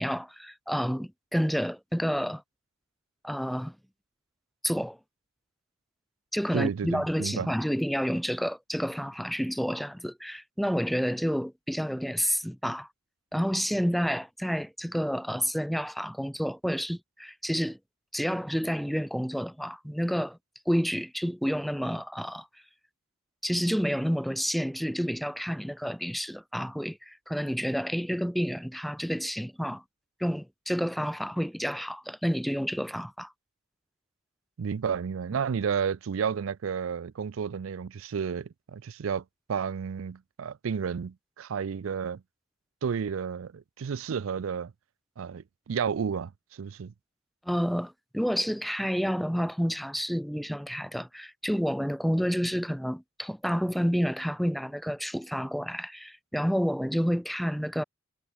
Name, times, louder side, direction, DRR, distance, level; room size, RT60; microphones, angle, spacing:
voice 1, 0.0-2.4 3.2-3.7 4.6-5.0 6.3-12.9 13.3-17.8 18.1-20.4 20.7-22.5 23.4-29.8 30.2-33.3 47.4-57.8, equal, ahead, 1.2 m, -29 dB
voice 2, 6.5-7.5 34.6-42.2 42.8-44.7 45.2-46.9, right 6 dB, 85° right, 0.4 m, -32 dB
head